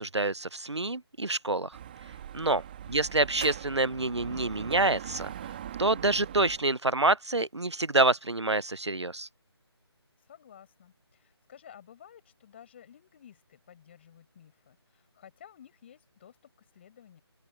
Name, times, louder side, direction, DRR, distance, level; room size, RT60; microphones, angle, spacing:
voice 1, 0.0-1.8 2.3-2.6 2.9-5.3 5.8-9.3, right 2 dB, 85° right, 0.7 m, -27 dB
Dog / Motorcycle, 1.7-6.7, right 10 dB, 20° right, 2.4 m, -41 dB
voice 2, 2.8-3.2 10.2-17.2, left 9 dB, 25° left, 7.0 m, -54 dB
open air
figure-of-eight pair, 155°, 14 cm